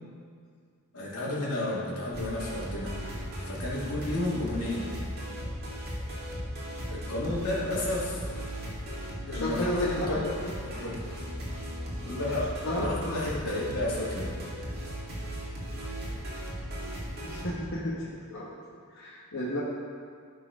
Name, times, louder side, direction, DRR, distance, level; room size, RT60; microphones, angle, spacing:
voice 1, 0.9-3.1 3.4-4.9 6.9-8.2 9.3-10.3 10.6-11.0 12.0-14.3, left 1 dB, 85° left, -6 dB, 2.5 m, -32 dB
sound 1, 2.1-17.5, equal, 45° right, 2.2 m, -37 dB
voice 2, 9.3-9.9 12.6-12.9 17.2-18.0 18.3-18.5 18.9-19.6, left 1 dB, 60° left, -7 dB, 1.3 m, -32 dB
13.0 x 4.9 x 5.0 m, 2.2 s
head